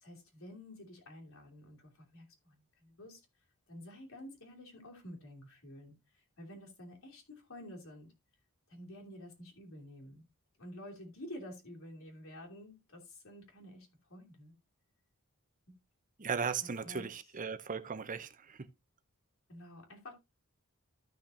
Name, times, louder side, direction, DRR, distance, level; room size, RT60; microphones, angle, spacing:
voice 1, 0.0-3.2 3.7-8.1 8.7-10.3 10.6-14.5 15.7-15.8 16.6-17.3 19.5-20.1, left 1 dB, 65° left, 2.9 m, -50 dB
voice 2, 16.2-18.6, right 6 dB, 40° right, 0.6 m, -37 dB
13.5 x 6.0 x 2.7 m
head